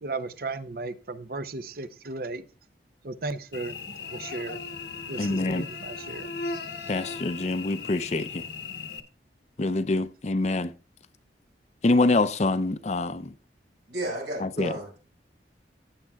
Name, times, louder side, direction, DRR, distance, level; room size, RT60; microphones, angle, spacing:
voice 1, 0.0-2.4 3.0-4.6 5.1-6.3, right 3 dB, 55° right, 0.7 m, -35 dB
Cricket / Buzz, 3.5-9.0, left 4 dB, 65° left, 1.1 m, -37 dB
voice 2, 5.2-5.7 6.9-8.4 9.6-10.7 11.8-13.2 14.4-14.7, left 2 dB, 40° left, 0.5 m, -25 dB
voice 3, 13.9-15.0, right 1 dB, 80° right, 5.4 m, -33 dB
15.5 x 8.6 x 2.3 m
head